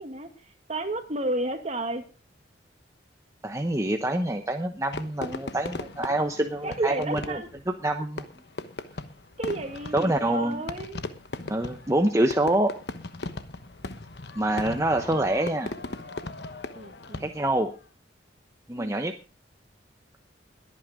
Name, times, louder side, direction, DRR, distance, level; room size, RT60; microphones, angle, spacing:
voice 1, 0.0-2.1 6.6-7.5 9.4-11.0 16.7-17.3 18.8-19.1, right 2 dB, 40° right, 6 dB, 2.1 m, -32 dB
voice 2, 3.4-8.2 9.9-10.6 11.5-12.7 14.4-15.7 17.2-17.7 18.7-19.1, right 1 dB, 15° right, 5 dB, 0.9 m, -26 dB
Fireworks, 4.9-17.6, left 2 dB, 65° left, 1.1 m, -38 dB
21.5 x 9.1 x 3.8 m, 0.34 s
head